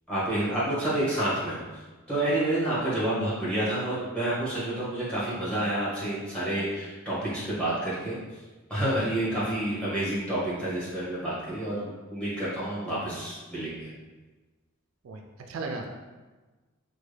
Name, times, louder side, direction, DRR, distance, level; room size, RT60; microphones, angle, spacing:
voice 1, 0.1-1.6 2.1-8.2 8.7-13.9, right 1 dB, 5° left, -9 dB, 1.1 m, -29 dB
voice 2, 15.0-15.9, right 3 dB, 65° right, 3 dB, 0.3 m, -37 dB
3.2 x 2.2 x 3.2 m, 1.3 s
head